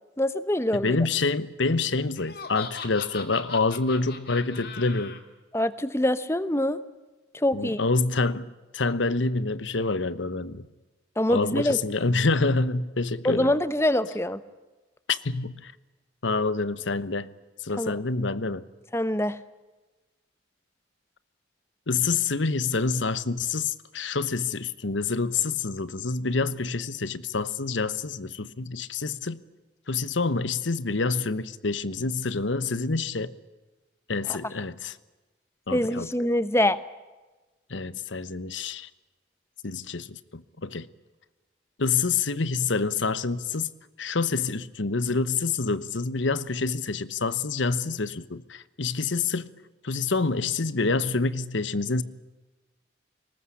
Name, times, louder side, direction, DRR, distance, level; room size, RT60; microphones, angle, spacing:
voice 1, 0.2-1.0 5.5-6.8 7.3-7.8 11.2-11.8 13.2-14.4 17.8-17.9 18.9-19.4 34.3-34.4 35.7-36.8, left 1 dB, 15° left, 1.0 m, -24 dB
voice 2, 0.7-5.2 7.5-10.7 11.3-13.5 15.1-15.7 16.2-17.3 17.6-18.6 21.9-29.4 29.9-33.3 34.1-34.9 35.7-36.1 37.7-38.9 39.6-40.9 41.8-43.7 44.0-49.5 49.8-52.0, left 4 dB, 80° left, 1.1 m, -27 dB
Laughter, 2.1-5.2, left 5 dB, 55° left, 2.6 m, -39 dB
23.5 x 20.0 x 9.9 m
head